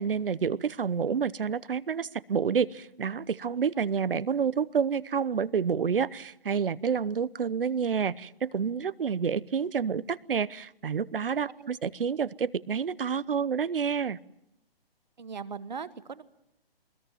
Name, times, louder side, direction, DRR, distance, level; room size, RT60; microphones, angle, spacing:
voice 1, 0.0-14.2, right 6 dB, 65° right, 21 dB, 0.9 m, -29 dB
voice 2, 15.2-16.2, right 6 dB, 45° right, 16 dB, 1.2 m, -39 dB
22.5 x 21.0 x 9.2 m, 0.83 s
hypercardioid pair, 180°, 30 cm